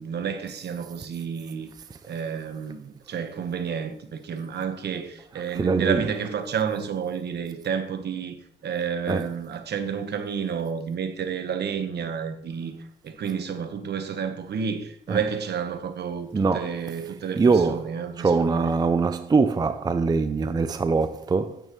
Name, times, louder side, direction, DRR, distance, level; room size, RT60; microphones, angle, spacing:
voice 1, 0.0-1.7 2.1-8.4 8.6-12.7 13.0-18.7, right 7 dB, 55° right, 1.1 m, -30 dB
voice 2, 5.3-6.1 9.1-9.3 15.1-15.2 16.3-16.8 17.4-21.7, right 4 dB, 20° right, 0.4 m, -23 dB
9.2 x 8.8 x 3.1 m
cardioid pair, 90°, 20 cm